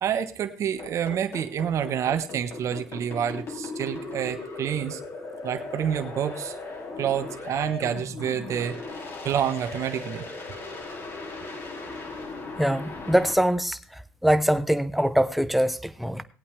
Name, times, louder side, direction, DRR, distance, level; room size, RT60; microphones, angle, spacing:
voice 1, 0.0-5.0 5.4-6.5 7.0-10.3, right 9 dB, 55° right, 1.1 m, -28 dB
sound 1, 0.8-13.3, left 3 dB, 45° left, 3.3 m, -37 dB
voice 2, 12.6-16.2, right 1 dB, ahead, 0.9 m, -23 dB
18.5 x 8.6 x 3.4 m
supercardioid pair, 75°, 6 cm